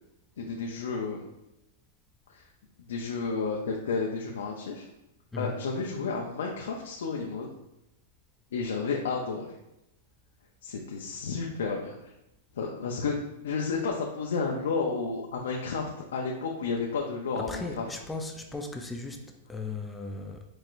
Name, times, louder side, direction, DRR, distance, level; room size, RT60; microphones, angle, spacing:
voice 1, 0.4-1.2 2.3-2.4 2.9-4.9 5.4-7.5 8.5-9.5 10.6-12.1 12.5-17.9, left 4 dB, 85° left, -1 dB, 0.7 m, -31 dB
voice 2, 5.3-5.7 17.3-20.4, left 3 dB, 5° left, 3 dB, 0.3 m, -37 dB
4.8 x 4.3 x 2.6 m, 0.89 s
supercardioid pair, 165°, 0 cm